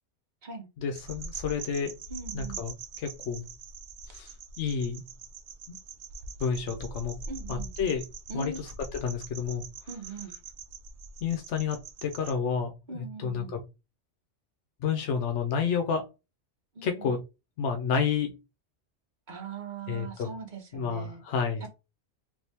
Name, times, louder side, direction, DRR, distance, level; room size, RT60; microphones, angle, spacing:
voice 1, 0.8-2.0 2.3-3.5 4.1-5.0 5.7-5.8 6.4-7.2 7.5-8.0 8.3-9.7 11.2-13.6 14.8-16.1 16.8-17.2 17.6-18.4 19.9-20.3 20.7-21.7, left 6 dB, 90° left, 1.0 m, -30 dB
sound 1, 0.9-12.3, right 4 dB, 75° right, 0.9 m, -43 dB
voice 2, 2.1-2.6 7.3-7.7 8.3-8.6 9.9-10.3 12.9-13.5 16.7-17.1 19.3-21.2 21.6-21.7, right 4 dB, 45° right, 0.9 m, -40 dB
3.4 x 2.6 x 2.8 m
omnidirectional pair, 1.2 m